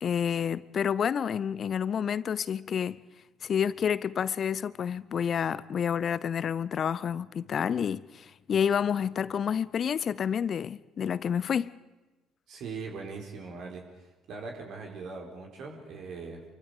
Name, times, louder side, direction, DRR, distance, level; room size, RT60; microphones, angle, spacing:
voice 1, 0.0-3.0 3.4-11.7, left 8 dB, 45° left, 0.7 m, -29 dB
voice 2, 12.5-16.4, right 4 dB, 55° right, 4.4 m, -41 dB
28.0 x 24.0 x 5.0 m
figure-of-eight pair, 50°, 0 cm